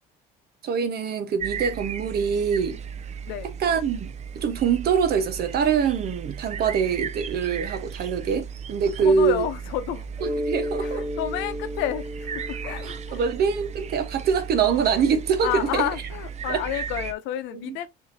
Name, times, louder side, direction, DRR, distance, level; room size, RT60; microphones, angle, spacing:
voice 1, 0.6-2.8 3.6-9.4 10.2-11.1 12.8-15.9 16.5-16.6 17.5-17.8, right 6 dB, 55° right, 1.2 m, -24 dB
sound 1, 1.4-17.1, right 7 dB, 35° right, 0.6 m, -36 dB
voice 2, 9.0-10.1 10.8-13.3 15.4-17.9, left 11 dB, 80° left, 0.8 m, -30 dB
Mallet percussion, 10.2-14.6, left 1 dB, ahead, 2.4 m, -34 dB
6.5 x 2.9 x 2.8 m
supercardioid pair, 100°, 19 cm